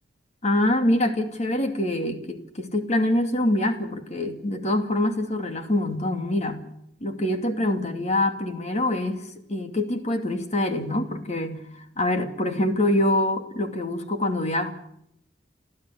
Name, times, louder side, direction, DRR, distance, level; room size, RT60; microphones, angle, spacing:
voice 1, 0.4-6.6 7.0-9.2 9.5-11.6 12.0-14.7, left 1 dB, 40° left, 6 dB, 2.4 m, -25 dB
30.0 x 13.5 x 8.2 m, 0.76 s
head